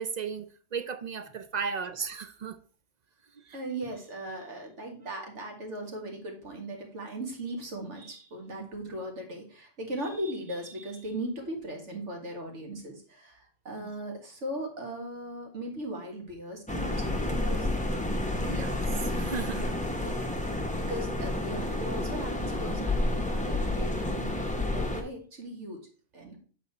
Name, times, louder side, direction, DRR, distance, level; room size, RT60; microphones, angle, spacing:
voice 1, 0.0-2.6 3.4-3.6 8.6-8.7 13.8-13.9 18.4-19.7, right 6 dB, 55° right, 0.4 m, -36 dB
voice 2, 3.5-17.7 19.9-25.9 26.1-26.4, right 1 dB, 75° right, 2.1 m, -38 dB
sound 1, 16.7-25.0, left 1 dB, 5° left, 0.8 m, -30 dB
7.9 x 4.2 x 4.2 m
omnidirectional pair, 1.2 m